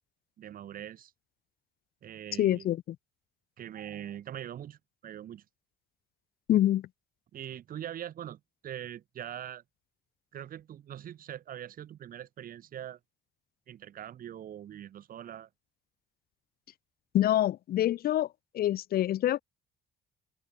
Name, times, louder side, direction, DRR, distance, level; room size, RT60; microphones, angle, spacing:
voice 1, 0.4-1.1 2.0-2.7 3.6-5.4 7.3-9.6 10.3-13.0 13.7-15.5, right 10 dB, 55° right, 6.0 m, -42 dB
voice 2, 2.4-3.0 6.5-6.9 17.1-18.3 18.5-19.4, left 12 dB, 65° left, 2.2 m, -26 dB
open air
cardioid pair, 110°, 17 cm